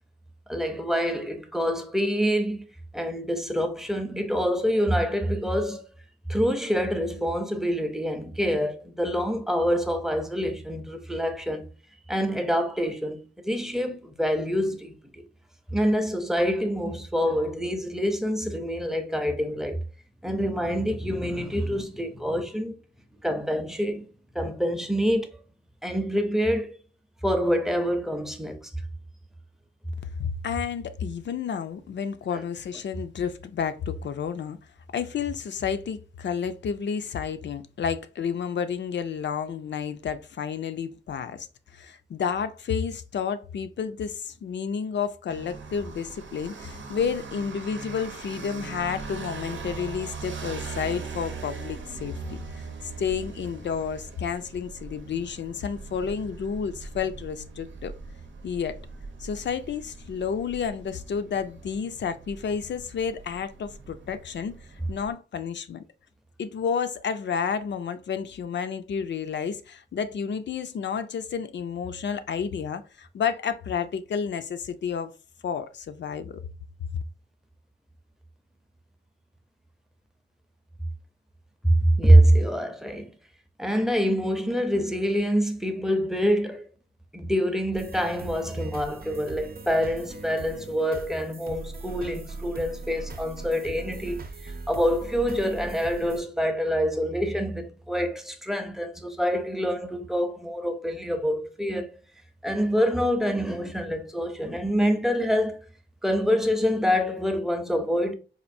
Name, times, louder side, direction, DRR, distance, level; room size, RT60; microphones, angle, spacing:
voice 1, 0.5-2.7 2.9-5.9 6.3-11.7 12.1-15.2 15.7-19.8 20.2-22.7 23.2-24.1 24.3-25.3 25.8-26.7 27.2-28.7 81.6-83.1 83.6-86.7 87.1-101.9 102.4-105.7 106.0-108.1, equal, ahead, 0.5 m, -26 dB
voice 2, 30.2-34.6 34.9-41.5 41.7-57.9 58.4-58.8 59.2-64.5 64.9-65.8 66.4-75.1 75.4-76.3, left 7 dB, 70° left, 0.4 m, -31 dB
sound 1, 45.3-65.1, right 4 dB, 90° right, 0.7 m, -40 dB
sound 2, 87.7-96.2, right 3 dB, 55° right, 0.6 m, -40 dB
4.2 x 2.5 x 2.5 m
wide cardioid pair, 135°, 19 cm